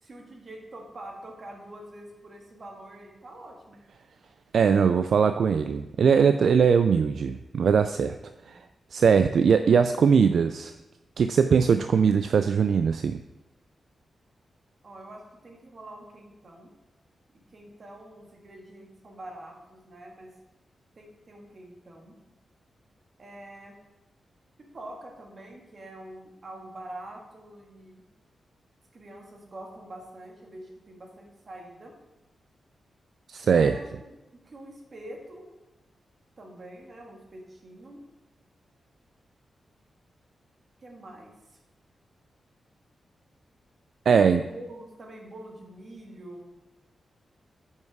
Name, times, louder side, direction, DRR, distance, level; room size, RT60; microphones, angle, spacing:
voice 1, 0.0-3.8 8.4-8.6 9.2-9.5 14.8-16.7 17.3-20.3 21.0-22.2 23.2-23.8 24.6-28.0 28.9-32.0 33.6-35.5 36.4-38.0 40.8-41.6 44.1-46.6, right 1 dB, 40° right, 1 dB, 1.7 m, -45 dB
voice 2, 4.5-8.2 8.5-8.6 8.9-10.7 11.2-13.2 33.3-33.8 44.1-44.4, right 6 dB, 65° right, 9 dB, 0.3 m, -21 dB
9.1 x 5.6 x 4.7 m, 1.0 s
wide cardioid pair, 145°, 0 cm